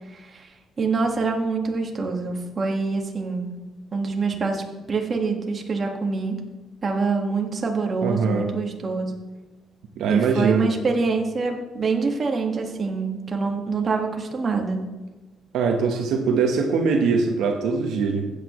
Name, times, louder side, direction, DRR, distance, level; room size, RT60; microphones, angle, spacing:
voice 1, 0.1-0.5 0.8-3.5 3.9-6.4 6.8-9.2 10.1-14.8, right 4 dB, 40° right, 2 dB, 1.8 m, -25 dB
voice 2, 8.0-8.5 10.0-10.7 15.5-18.3, right 5 dB, 85° right, 3 dB, 1.1 m, -22 dB
15.5 x 8.2 x 3.2 m, 1.2 s
cardioid pair, 90°, 0 cm